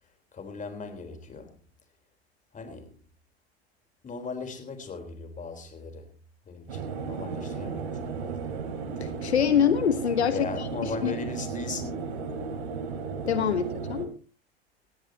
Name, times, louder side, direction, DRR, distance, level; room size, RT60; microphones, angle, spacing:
voice 1, 0.3-1.6 2.5-3.0 4.0-6.1 6.5-8.6 10.3-12.2, left 4 dB, 25° left, 3.7 m, -38 dB
sound 1, 6.7-14.1, right 5 dB, 70° right, 2.9 m, -34 dB
voice 2, 9.0-10.5 10.8-11.1 13.3-14.1, left 8 dB, 85° left, 1.1 m, -25 dB
18.5 x 15.5 x 2.8 m
hypercardioid pair, 90°, 32 cm